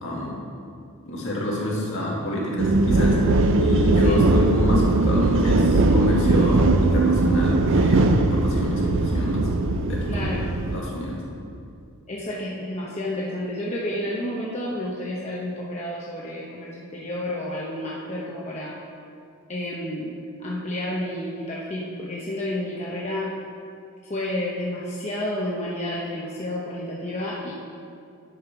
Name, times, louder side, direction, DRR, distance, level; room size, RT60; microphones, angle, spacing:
voice 1, 0.0-0.3 1.1-9.5 9.8-10.3 10.7-11.2, left 1 dB, 60° left, -4 dB, 1.9 m, -28 dB
sound 1, 2.6-10.8, right 2 dB, 60° right, 0.5 m, -20 dB
voice 2, 10.1-10.5 12.1-18.8 19.5-23.3 24.1-27.5, left 1 dB, 30° left, -5 dB, 0.8 m, -30 dB
10.0 x 5.6 x 4.7 m, 2.4 s
head